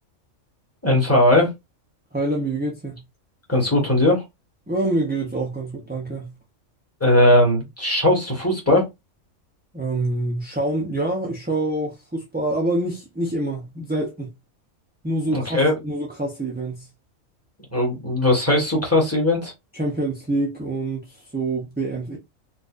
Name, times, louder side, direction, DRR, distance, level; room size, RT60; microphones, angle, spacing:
voice 1, 0.8-1.5 3.5-4.2 7.0-8.9 15.3-15.7 17.7-19.5, left 1 dB, 10° left, 1.4 m, -18 dB
voice 2, 2.1-3.0 4.7-6.3 9.7-14.3 15.0-16.9 19.7-22.2, right 2 dB, 10° right, 0.5 m, -26 dB
4.3 x 2.5 x 2.5 m
omnidirectional pair, 1.4 m